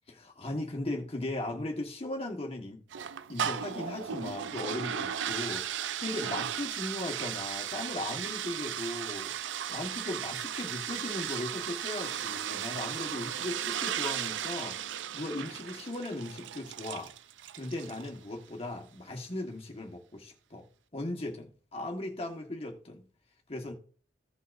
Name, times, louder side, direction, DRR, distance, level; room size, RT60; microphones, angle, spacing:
voice 1, 0.1-2.8 3.3-9.3 9.7-17.1 17.5-20.6 20.9-23.0 23.5-23.7, left 1 dB, 30° left, 1.3 m, -37 dB
sound 1, 2.9-18.2, right 9 dB, 80° right, 0.4 m, -36 dB
15.5 x 5.6 x 2.5 m
head